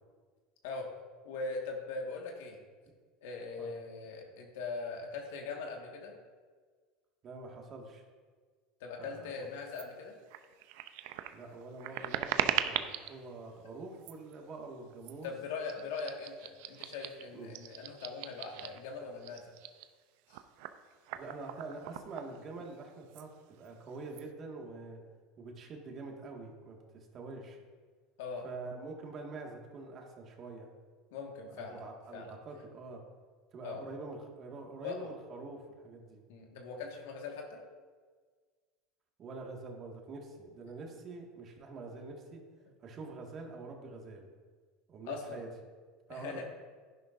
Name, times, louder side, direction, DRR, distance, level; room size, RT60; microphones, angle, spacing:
voice 1, 1.2-2.6 3.2-6.1 8.8-10.2 15.2-19.5 20.3-20.4 28.2-28.5 31.1-31.8 32.1-32.3 33.6-33.8 34.8-35.1 36.3-37.6 45.1-45.4 46.1-46.4, left 4 dB, 80° left, 1 dB, 1.7 m, -41 dB
voice 2, 7.2-8.0 9.0-9.5 11.3-15.3 17.3-17.5 21.1-23.3 23.6-25.0 25.4-27.6 28.4-30.7 31.6-33.0 33.5-36.2 39.2-42.4 42.8-44.3 44.9-45.5 46.1-46.4, right 3 dB, 40° right, 1 dB, 1.9 m, -45 dB
sound 1, 9.7-9.9 10.3-13.2 13.9-14.3 15.0-15.3 15.6-18.9 19.2-22.8 23.1-23.3 23.6-24.2, right 12 dB, 70° right, 0.5 m, -39 dB
11.0 x 10.5 x 2.6 m, 1.5 s
supercardioid pair, 105°, 0 cm